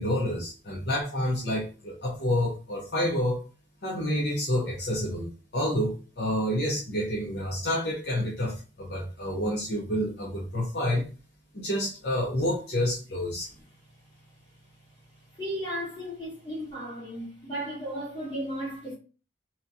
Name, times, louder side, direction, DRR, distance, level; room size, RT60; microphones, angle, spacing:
voice 1, 0.0-3.4 3.8-11.1 11.5-13.5, left 1 dB, 60° left, 0.7 m, -29 dB
voice 2, 15.4-18.9, equal, 25° left, 1.5 m, -35 dB
2.9 x 2.4 x 2.6 m
head